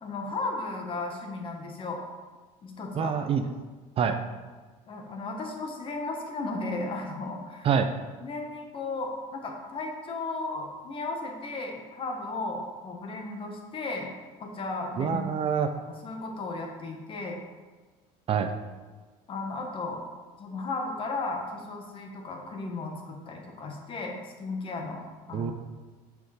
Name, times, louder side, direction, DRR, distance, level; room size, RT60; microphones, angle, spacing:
voice 1, 0.0-2.0 2.6-3.1 4.0-4.1 4.9-7.7 8.2-14.1 14.4-15.3 15.9-17.4 19.3-20.0 20.4-25.5, left 3 dB, 35° left, 2 dB, 1.4 m, -35 dB
voice 2, 2.9-3.4 4.0-4.2 7.6-7.9 15.0-15.7 18.3-18.5 25.3-25.5, right 7 dB, 40° right, 7 dB, 0.5 m, -25 dB
6.5 x 5.0 x 4.9 m, 1.4 s
cardioid pair, 120°, 15 cm